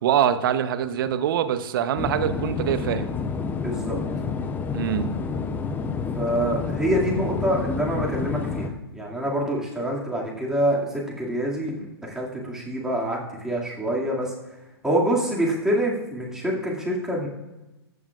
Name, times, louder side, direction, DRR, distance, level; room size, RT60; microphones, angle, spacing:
voice 1, 0.0-3.1 4.7-5.1, right 9 dB, 55° right, 11 dB, 0.8 m, -24 dB
sound 1, 2.0-8.7, left 5 dB, 15° left, 0.6 m, -29 dB
voice 2, 3.6-4.0 6.2-11.7 12.0-14.3 14.8-17.3, right 1 dB, 5° right, -4 dB, 2.2 m, -26 dB
21.5 x 7.2 x 2.4 m, 1.0 s
hypercardioid pair, 130°, 14 cm